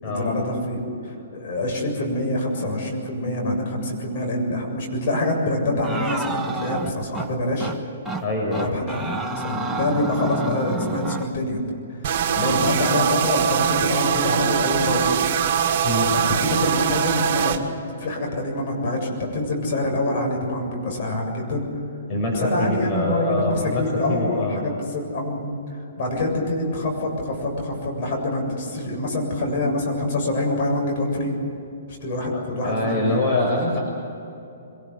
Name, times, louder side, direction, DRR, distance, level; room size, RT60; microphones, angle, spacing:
voice 1, 0.1-7.7 8.5-11.6 11.9-12.0 12.3-15.1 16.1-17.6 18.0-21.6 22.3-25.6 26.0-31.3 31.9-33.0 33.4-33.8, left 1 dB, 50° left, 1 dB, 7.3 m, -25 dB
sound 1, 5.8-7.3 7.6-7.8 8.1-8.2 8.5-11.3, right 3 dB, 5° right, 1.5 m, -30 dB
voice 2, 8.2-8.7 12.5-12.7 15.8-16.1 22.1-23.8 24.1-24.7 32.3-33.8, left 2 dB, 35° left, -1 dB, 5.8 m, -25 dB
sound 2, 12.0-17.6, right 8 dB, 45° right, 2.1 m, -22 dB
25.5 x 19.5 x 8.0 m, 2.8 s
hypercardioid pair, 130°, 0 cm